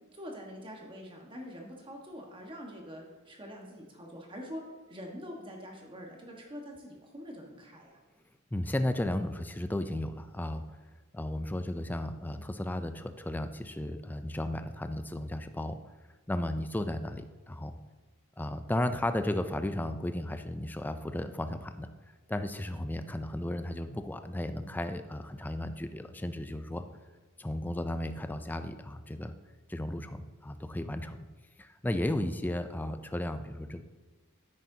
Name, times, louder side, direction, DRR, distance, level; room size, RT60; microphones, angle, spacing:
voice 1, 0.1-4.6 4.9-8.0, equal, 25° right, 0 dB, 1.4 m, -45 dB
voice 2, 8.5-10.6 11.1-15.8 16.3-17.8 18.4-21.9 22.3-26.8 27.4-29.3 29.7-31.3 31.6-33.8, left 1 dB, 10° left, 9 dB, 0.4 m, -34 dB
9.8 x 8.5 x 2.8 m, 1.3 s
head